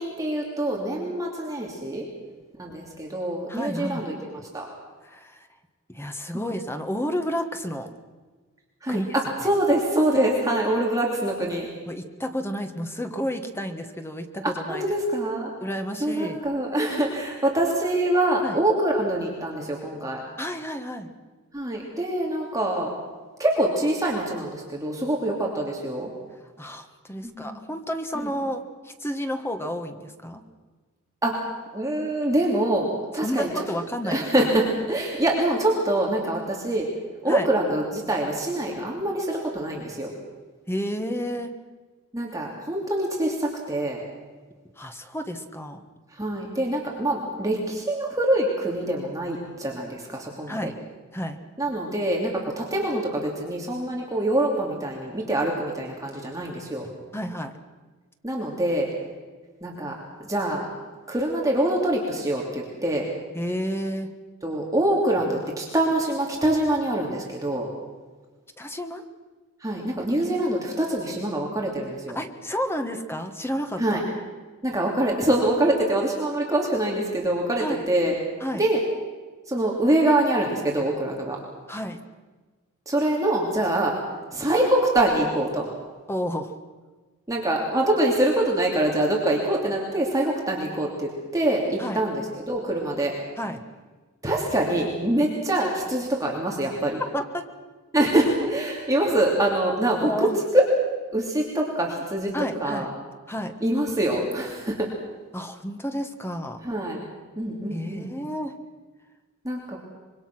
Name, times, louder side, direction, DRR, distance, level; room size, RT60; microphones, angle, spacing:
voice 1, 0.0-2.0 2.6-4.7 6.3-6.4 8.8-11.7 14.4-15.5 16.0-20.2 21.5-22.9 23.4-26.1 27.2-27.6 28.2-28.3 31.2-31.4 31.7-33.6 34.0-36.9 37.2-40.1 42.1-44.0 46.1-50.7 51.6-56.8 58.2-58.9 59.6-60.7 61.1-63.0 64.4-67.7 69.6-72.2 73.8-74.0 74.6-78.1 78.6-78.8 79.5-81.4 82.9-83.9 84.3-85.7 87.3-93.1 94.2-97.0 97.9-100.3 100.5-100.6 101.1-102.4 102.6-102.9 103.6-104.9 106.6-107.0 107.4-108.1 109.4-109.8, right 1 dB, 15° right, -2 dB, 2.9 m, -25 dB
voice 2, 3.5-4.0 5.0-5.5 5.9-7.9 8.9-9.1 11.9-14.9 15.6-16.4 18.4-18.6 20.4-21.1 26.6-30.4 33.2-34.5 37.3-37.5 40.7-41.5 44.8-45.8 50.5-50.8 51.1-51.4 57.1-57.5 63.3-64.1 68.6-69.0 72.1-74.0 77.6-77.9 78.4-78.6 81.7-82.0 86.1-86.5 91.8-92.0 93.4-93.6 97.1-97.4 100.0-100.4 102.3-102.9 103.3-103.5 105.3-106.6 107.7-108.5, equal, 10° left, 6 dB, 1.5 m, -31 dB
25.5 x 23.0 x 6.2 m, 1.4 s
head